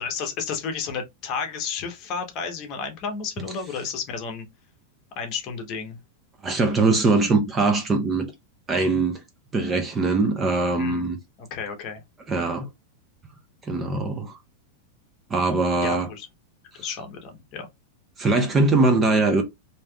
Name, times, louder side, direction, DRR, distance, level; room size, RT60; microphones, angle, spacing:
voice 1, 0.0-4.5 5.2-6.0 10.8-11.1 11.5-12.0 15.8-16.3 16.8-17.7, left 5 dB, 35° left, 0.9 m, -32 dB
voice 2, 6.4-8.3 8.7-9.2 9.5-11.2 12.3-12.7 13.6-14.4 15.3-16.1 18.2-19.4, right 3 dB, 15° right, 0.5 m, -21 dB
3.3 x 2.7 x 2.2 m
supercardioid pair, 155°, 0 cm